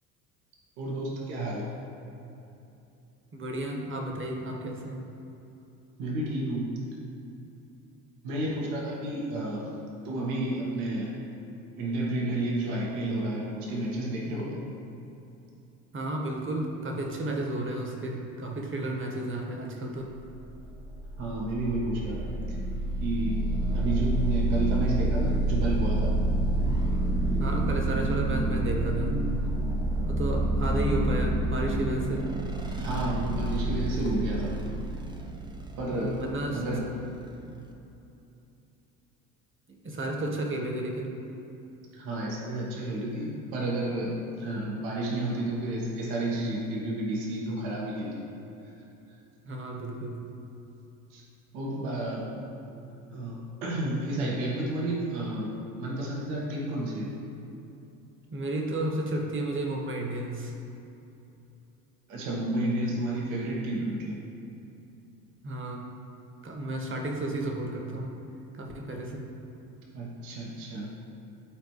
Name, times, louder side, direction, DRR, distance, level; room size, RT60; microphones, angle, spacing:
voice 1, 0.8-1.7 6.0-6.8 8.2-9.7 10.0-11.2 11.8-14.6 21.2-22.4 23.0-23.5 23.7-26.2 32.7-34.6 35.8-36.3 36.5-36.9 41.9-48.2 51.1-51.2 51.5-52.5 53.1-55.5 55.8-57.1 62.1-64.2 69.9-70.9, right 1 dB, 70° right, -3 dB, 1.6 m, -31 dB
voice 2, 3.3-5.1 15.9-20.1 27.4-29.1 30.0-32.3 35.9-36.6 39.7-41.2 49.4-50.3 58.3-60.5 65.4-65.9 66.4-68.1 68.5-69.2, right 1 dB, 25° right, 1 dB, 1.4 m, -32 dB
sound 1, 20.4-37.7, right 1 dB, 10° right, 0.7 m, -28 dB
12.0 x 4.4 x 3.2 m, 2.8 s
hypercardioid pair, 70°, 46 cm